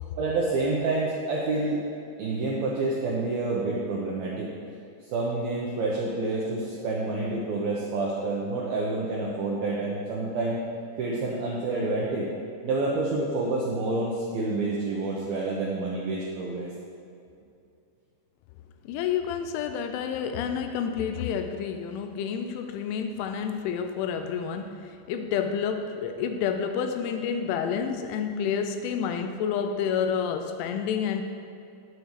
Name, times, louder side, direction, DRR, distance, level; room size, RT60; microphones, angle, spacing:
voice 1, 0.2-1.8 2.2-4.5 5.1-10.6 11.0-12.3 12.6-16.7, right 2 dB, 90° right, -4 dB, 2.1 m, -28 dB
voice 2, 18.9-31.2, left 7 dB, 85° left, 7 dB, 2.9 m, -29 dB
18.5 x 7.0 x 3.2 m, 2.5 s
omnidirectional pair, 5.9 m